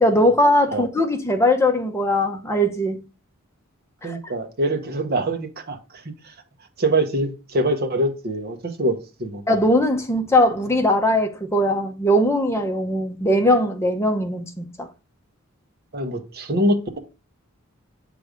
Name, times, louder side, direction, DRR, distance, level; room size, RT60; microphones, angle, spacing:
voice 1, 0.0-3.0 4.0-4.2 9.5-14.9, left 1 dB, 15° left, 0.8 m, -20 dB
voice 2, 4.0-5.8 6.2-6.3 6.8-9.4 15.9-17.0, right 1 dB, 45° right, 1.1 m, -24 dB
7.8 x 3.4 x 5.0 m
head